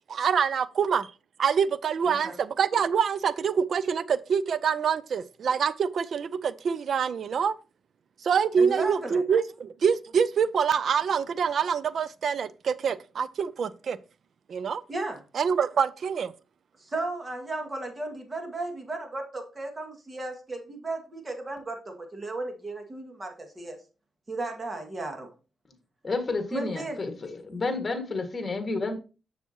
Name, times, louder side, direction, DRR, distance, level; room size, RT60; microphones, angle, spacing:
voice 1, 0.1-1.1 1.4-7.5 8.2-14.0 14.5-14.8 15.3-16.3, right 6 dB, 60° right, 0.5 m, -25 dB
voice 2, 8.6-9.2 14.9-15.2 16.8-23.8 24.3-25.3 26.5-27.0, right 2 dB, 30° right, 1.9 m, -35 dB
voice 3, 26.0-28.9, left 3 dB, 30° left, 1.7 m, -30 dB
7.0 x 7.0 x 2.8 m
cardioid pair, 85°, 0 cm